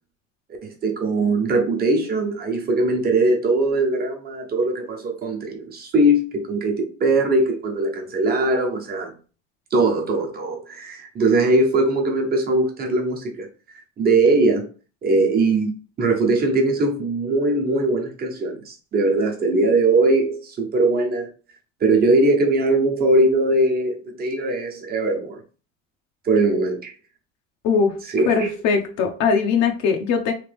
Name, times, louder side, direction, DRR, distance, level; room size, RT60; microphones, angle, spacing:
voice 1, 0.6-9.1 9.7-13.5 14.0-14.7 15.0-15.7 16.0-21.3 21.8-25.4 26.2-26.9 28.1-28.5, right 2 dB, 30° right, 1.1 m, -20 dB
voice 2, 28.3-30.3, left 5 dB, 60° left, 0.8 m, -20 dB
3.3 x 2.8 x 3.4 m
cardioid pair, 135°, 31 cm